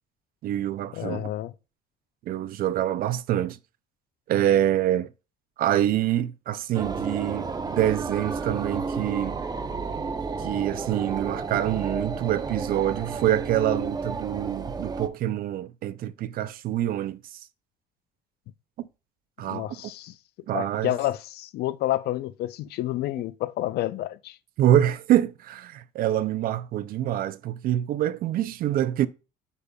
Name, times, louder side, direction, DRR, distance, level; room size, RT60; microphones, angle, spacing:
voice 1, 0.4-1.3 2.3-3.6 4.3-5.1 5.6-9.4 10.4-17.4 18.8-18.9 19.4-19.7 20.5-20.9 24.6-29.1, right 12 dB, 60° right, 0.4 m, -26 dB
voice 2, 0.9-1.5 19.5-20.1 20.5-24.4, left 14 dB, 75° left, 0.5 m, -29 dB
sound 1, 6.7-15.1, right 4 dB, 25° right, 0.6 m, -32 dB
8.2 x 5.2 x 2.3 m
cardioid pair, 110°, 17 cm